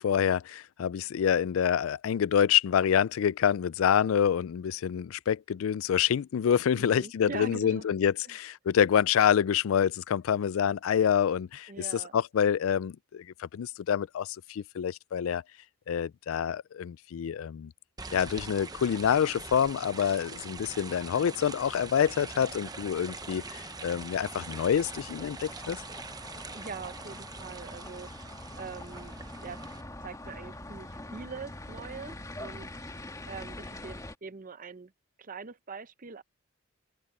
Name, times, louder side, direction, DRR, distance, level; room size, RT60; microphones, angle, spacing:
voice 1, 0.0-15.4 15.9-17.7 18.1-25.8, left 8 dB, 75° left, 0.3 m, -27 dB
voice 2, 6.7-7.9 8.2-8.4 11.7-12.1 26.5-29.6 30.0-32.7 33.3-34.9 35.2-36.2, right 4 dB, 40° right, 0.7 m, -43 dB
sound 1, 18.0-29.8, right 4 dB, 20° right, 0.9 m, -43 dB
sound 2, 20.4-34.2, left 1 dB, 15° left, 1.8 m, -45 dB
open air
head